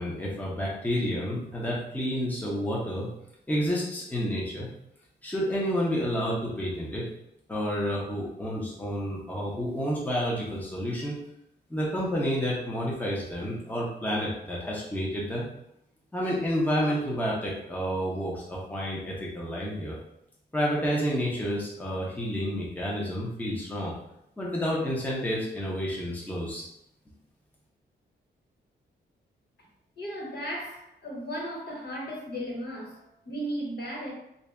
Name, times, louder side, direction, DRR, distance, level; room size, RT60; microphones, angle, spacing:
voice 1, 0.0-3.1 3.5-4.7 5.2-7.1 7.5-11.2 11.7-15.5 16.1-20.0 20.5-23.9 24.4-26.6, equal, 10° left, -5 dB, 0.9 m, -30 dB
voice 2, 30.0-34.1, equal, 60° left, -3 dB, 1.5 m, -35 dB
3.3 x 2.7 x 3.5 m, 0.80 s
cardioid pair, 100°, 19 cm